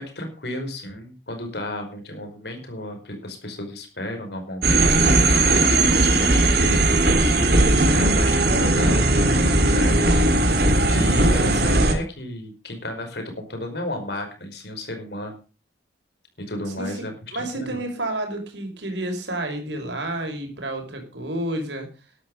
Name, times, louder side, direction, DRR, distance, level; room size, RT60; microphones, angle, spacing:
voice 1, 0.0-10.5 10.9-15.4 16.4-17.8, left 1 dB, 60° left, 5 dB, 4.9 m, -33 dB
sound 1, 4.6-11.9, right 2 dB, 55° right, 3.1 m, -18 dB
voice 2, 16.7-17.1 17.3-21.9, right 1 dB, 75° right, 4 dB, 5.4 m, -30 dB
13.0 x 12.0 x 5.4 m, 0.34 s
head